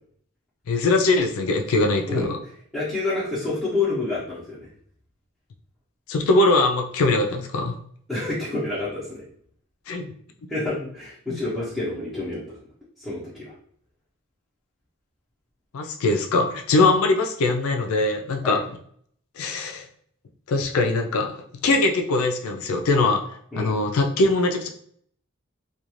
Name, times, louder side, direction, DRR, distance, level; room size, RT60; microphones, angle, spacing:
voice 1, 0.7-2.3 6.1-7.7 9.9-10.1 11.3-11.4 15.7-18.6 19.4-19.9 20.5-21.3 21.6-24.7, left 2 dB, 75° left, 3 dB, 0.4 m, -22 dB
voice 2, 2.7-4.7 8.1-9.2 10.5-12.4 13.0-13.5 16.8-16.9 18.4-18.6 21.6-21.7 23.5-23.8, left 2 dB, ahead, -13 dB, 0.7 m, -28 dB
2.4 x 2.3 x 3.0 m, 0.62 s
head